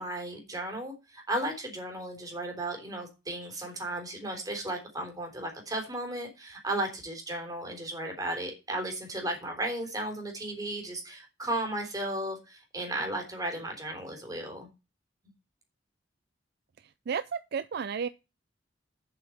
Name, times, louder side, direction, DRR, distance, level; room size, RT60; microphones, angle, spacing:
voice 1, 0.0-14.7, right 1 dB, 20° right, 3.6 m, -35 dB
voice 2, 17.1-18.1, right 6 dB, 60° right, 0.4 m, -32 dB
7.8 x 5.7 x 7.7 m
head